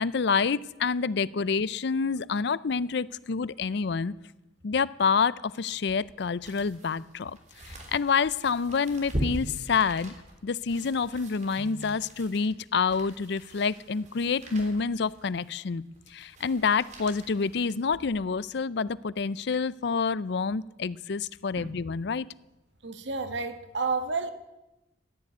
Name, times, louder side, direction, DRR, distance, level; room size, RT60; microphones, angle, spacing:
voice 1, 0.0-4.1 4.6-7.4 7.7-10.1 10.4-15.8 16.1-22.3, left 5 dB, 65° left, 0.5 m, -28 dB
sound 1, 5.7-18.3 18.8-18.9, equal, 40° right, 3.3 m, -41 dB
voice 2, 22.8-24.3, right 4 dB, 75° right, 1.5 m, -31 dB
14.5 x 10.0 x 9.4 m
head